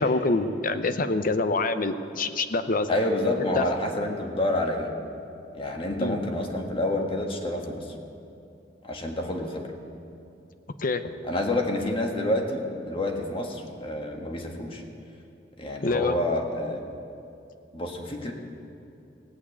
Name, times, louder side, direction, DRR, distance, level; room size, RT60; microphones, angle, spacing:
voice 1, 0.0-2.9 3.5-3.6 6.0-6.2 10.8-11.1 15.8-16.2, left 3 dB, 50° left, 10 dB, 0.7 m, -26 dB
voice 2, 2.9-4.9 5.5-7.8 8.8-9.7 11.2-14.8 15.6-16.8 17.7-18.3, left 1 dB, 30° left, 2 dB, 1.6 m, -28 dB
17.0 x 8.6 x 8.4 m, 2.6 s
head